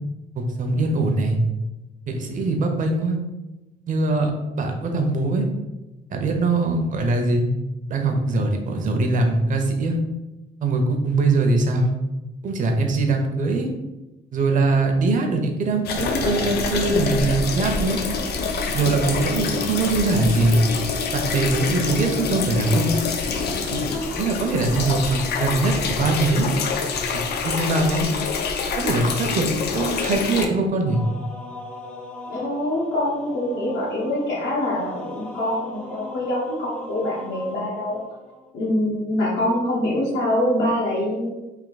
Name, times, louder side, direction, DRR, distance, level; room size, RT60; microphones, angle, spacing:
voice 1, 0.4-1.4 2.1-3.2 3.9-4.3 4.6-5.5 6.1-7.5 7.9-10.0 10.6-11.9 12.4-13.7 14.3-18.0 18.7-20.6 21.1-22.9 23.7-23.8 24.2-26.5 27.1-28.1 28.8-31.0, right 3 dB, 45° right, 3 dB, 0.6 m, -22 dB
sound 1, 15.9-30.5, left 5 dB, 60° left, 0.5 m, -26 dB
sound 2, 30.9-38.5, left 1 dB, 5° left, 0.3 m, -37 dB
voice 2, 32.3-38.0 38.5-41.3, left 1 dB, 80° left, -6 dB, 1.0 m, -24 dB
3.4 x 2.7 x 3.9 m, 1.0 s
cardioid pair, 175°, 18 cm